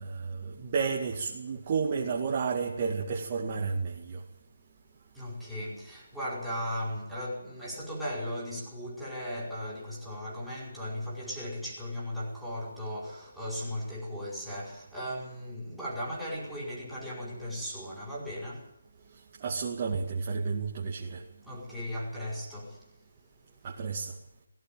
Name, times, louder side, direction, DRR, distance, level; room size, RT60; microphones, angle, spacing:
voice 1, 0.0-4.2 17.5-17.6 19.1-21.2 23.6-24.2, right 5 dB, 35° right, 2.3 m, -32 dB
voice 2, 5.1-18.8 21.4-22.8, equal, ahead, 4.9 m, -37 dB
17.5 x 16.5 x 9.1 m
figure-of-eight pair, 155°, 0 cm